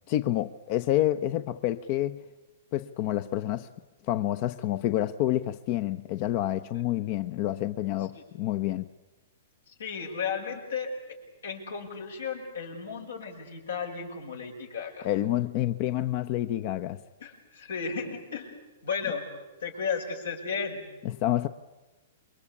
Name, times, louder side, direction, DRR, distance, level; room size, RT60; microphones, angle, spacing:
voice 1, 0.1-2.2 2.7-3.7 4.1-8.9 15.0-17.0 21.0-21.5, left 14 dB, 45° left, 0.8 m, -28 dB
voice 2, 9.7-10.9 11.4-15.1 17.2-18.6 18.8-19.3 19.6-20.8, left 6 dB, 85° left, 6.9 m, -34 dB
28.0 x 23.0 x 8.6 m
hypercardioid pair, 135°, 0 cm